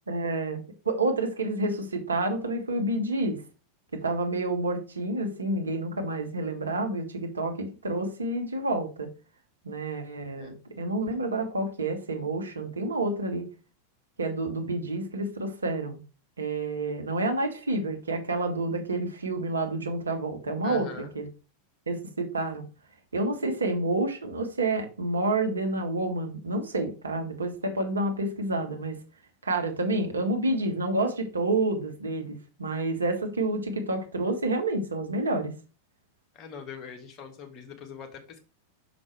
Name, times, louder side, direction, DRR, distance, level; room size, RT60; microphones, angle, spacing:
voice 1, 0.1-3.4 4.0-9.1 9.6-13.4 14.2-16.0 16.4-21.3 21.9-22.6 23.1-28.9 29.4-35.5, right 2 dB, 75° right, 4 dB, 1.3 m, -29 dB
voice 2, 20.6-21.1 36.3-38.4, left 6 dB, 30° left, 2 dB, 1.9 m, -42 dB
6.1 x 5.2 x 4.6 m, 0.34 s
figure-of-eight pair, 90°, 0 cm